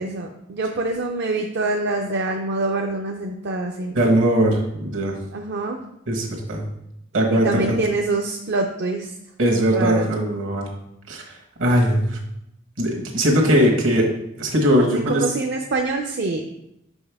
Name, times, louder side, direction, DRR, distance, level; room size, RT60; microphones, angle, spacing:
voice 1, 0.0-3.9 5.3-5.8 7.3-9.1 9.7-10.1 14.8-16.4, right 2 dB, 55° right, 2 dB, 0.5 m, -25 dB
voice 2, 3.9-5.1 6.1-6.6 7.1-7.7 9.4-10.7 11.1-12.2 12.8-14.1 14.4-15.3, equal, 75° right, 1 dB, 1.4 m, -20 dB
6.0 x 5.4 x 3.5 m, 0.82 s
head